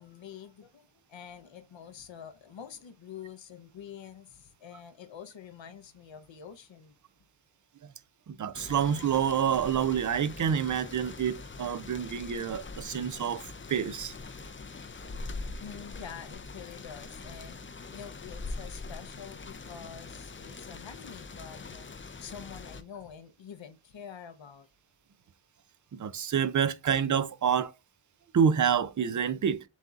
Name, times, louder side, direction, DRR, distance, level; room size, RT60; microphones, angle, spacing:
voice 1, 0.0-7.0 15.6-17.6 17.9-21.9 22.2-24.7, left 8 dB, 70° left, 0.8 m, -47 dB
voice 2, 8.3-13.4 13.7-14.1 25.9-27.7 28.3-29.6, right 8 dB, 40° right, 0.4 m, -28 dB
sound 1, 8.5-22.8, left 3 dB, 25° left, 0.4 m, -43 dB
7.2 x 2.8 x 2.4 m
wide cardioid pair, 95°, 46 cm